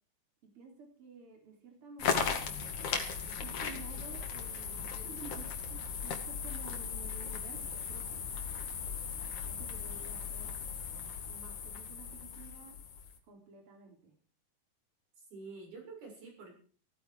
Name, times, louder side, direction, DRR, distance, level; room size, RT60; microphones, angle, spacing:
voice 1, 0.4-3.0 3.2-5.5 6.0-8.3 9.4-10.6 11.3-12.8 13.2-14.1, right 4 dB, 35° right, 3 dB, 4.3 m, -53 dB
sound 1, 2.0-13.2, left 6 dB, 55° left, 3.4 m, -37 dB
voice 2, 5.1-5.8 15.2-16.5, right 4 dB, 85° right, 0 dB, 9.3 m, -48 dB
16.5 x 15.0 x 4.8 m, 0.43 s
omnidirectional pair, 4.3 m